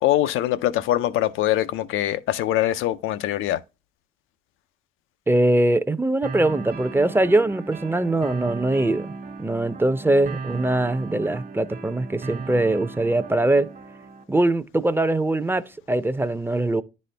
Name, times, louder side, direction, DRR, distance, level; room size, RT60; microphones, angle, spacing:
voice 1, 0.0-3.6, left 13 dB, 90° left, 0.5 m, -23 dB
voice 2, 5.3-9.1 9.4-13.7 14.3-16.8, right 2 dB, 10° right, 0.5 m, -22 dB
sound 1, 6.2-14.2, right 4 dB, 50° right, 1.3 m, -36 dB
10.0 x 4.2 x 3.3 m
cardioid pair, 90°, 20 cm